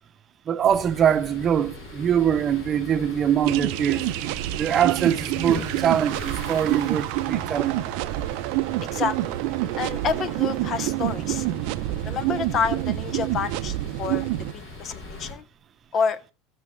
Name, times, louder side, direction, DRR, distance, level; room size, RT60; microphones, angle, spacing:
voice 1, 0.5-4.1 4.6-7.8, right 9 dB, 35° right, 0.8 m, -23 dB
sound 1, 0.7-15.3, left 2 dB, 60° left, 5.7 m, -40 dB
sound 2, 3.4-14.5, right 17 dB, 70° right, 0.5 m, -27 dB
voice 2, 8.9-9.3 9.8-11.5 12.0-14.3 14.5-15.4 15.9-16.2, left 6 dB, 40° left, 0.7 m, -28 dB
16.5 x 6.2 x 3.2 m
supercardioid pair, 115°, 0 cm